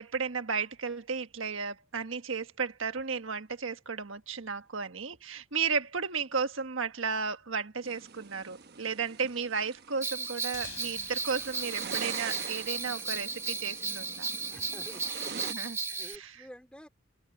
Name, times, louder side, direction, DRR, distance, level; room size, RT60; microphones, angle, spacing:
voice 1, 0.0-14.3 15.4-16.4, right 5 dB, 70° right, 1.5 m, -34 dB
sound 1, 7.8-15.5, right 6 dB, 50° right, 1.1 m, -44 dB
Bell, 10.0-16.2, right 4 dB, 15° right, 1.0 m, -35 dB
sound 2, 10.5-13.3, left 8 dB, 60° left, 3.4 m, -51 dB
voice 2, 14.5-16.9, equal, 5° left, 4.2 m, -50 dB
head